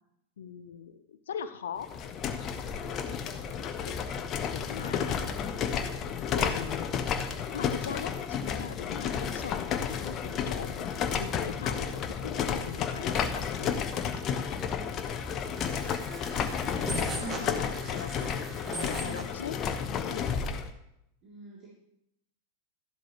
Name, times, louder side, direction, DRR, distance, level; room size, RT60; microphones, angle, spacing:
voice 1, 0.4-1.9 3.8-3.9 4.5-5.3 6.3-6.9 7.5-13.8 16.9-18.3 18.7-19.6 20.0-20.3, left 7 dB, 65° left, 12 dB, 0.7 m, -41 dB
sound 1, 1.8-20.7, left 7 dB, 30° left, 1.0 m, -32 dB
voice 2, 4.2-4.8 15.9-17.9 21.2-21.7, right 2 dB, 35° right, -6 dB, 3.4 m, -51 dB
sound 2, 15.6-19.4, right 3 dB, 20° right, 1.7 m, -40 dB
13.0 x 11.5 x 3.2 m, 0.79 s
figure-of-eight pair, 90°, 0 cm